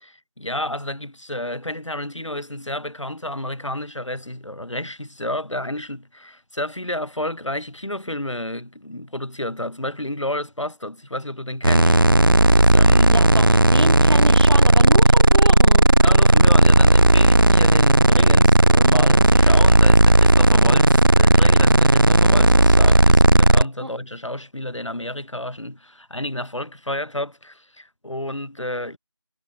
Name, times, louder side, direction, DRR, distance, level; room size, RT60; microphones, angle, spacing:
voice 1, 0.0-12.2 12.4-13.2 16.0-29.0, left 1 dB, 90° left, 4.7 m, -31 dB
sound 1, 11.6-23.6, right 1 dB, 45° right, 0.4 m, -14 dB
voice 2, 13.1-15.9 23.8-23.9, right 1 dB, 60° right, 7.4 m, -28 dB
figure-of-eight pair, 175°, 15 cm